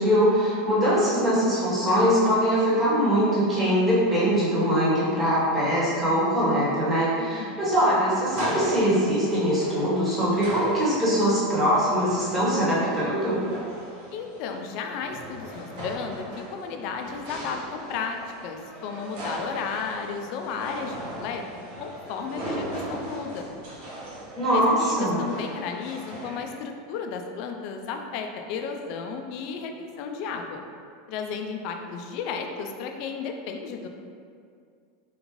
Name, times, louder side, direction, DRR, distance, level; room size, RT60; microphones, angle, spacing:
voice 1, 0.0-13.4 24.4-25.2, equal, 20° right, -9 dB, 1.3 m, -22 dB
voice 2, 7.2-7.7 14.1-16.3 16.5-18.2 18.4-21.4 21.8-23.5 24.5-30.6 31.1-33.9, left 5 dB, 55° left, 4 dB, 0.3 m, -33 dB
sound 1, 8.3-26.5, right 1 dB, 65° right, 0.9 m, -38 dB
3.5 x 2.4 x 3.1 m, 2.2 s
supercardioid pair, 125°, 0 cm